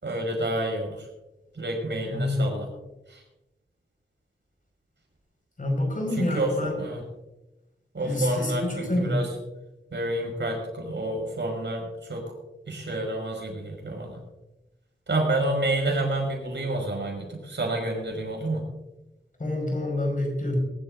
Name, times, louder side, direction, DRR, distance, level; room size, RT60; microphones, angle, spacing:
voice 1, 0.0-1.1 1.5-2.7 3.1-3.2 6.1-7.0 7.9-9.3 9.9-12.2 12.7-14.2 15.1-18.7, right 1 dB, 70° right, 0 dB, 5.4 m, -29 dB
voice 2, 2.1-2.4 5.6-6.7 8.0-9.2 19.4-20.6, left 1 dB, 45° left, 1 dB, 5.3 m, -27 dB
22.5 x 12.0 x 2.6 m, 0.98 s
wide cardioid pair, 95°, 20 cm